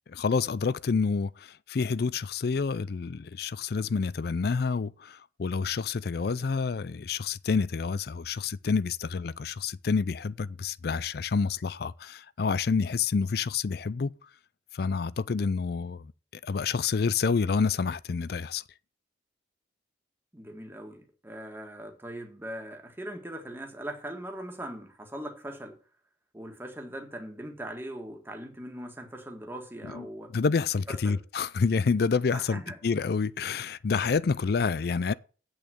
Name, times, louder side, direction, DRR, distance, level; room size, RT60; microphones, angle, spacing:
voice 1, 0.1-14.1 14.7-18.6 29.9-30.0 30.3-35.1, left 5 dB, 60° left, 0.4 m, -28 dB
voice 2, 20.3-25.8 26.3-30.3 30.9-31.2 32.3-32.8, right 1 dB, 10° right, 1.7 m, -40 dB
8.6 x 6.3 x 7.6 m
head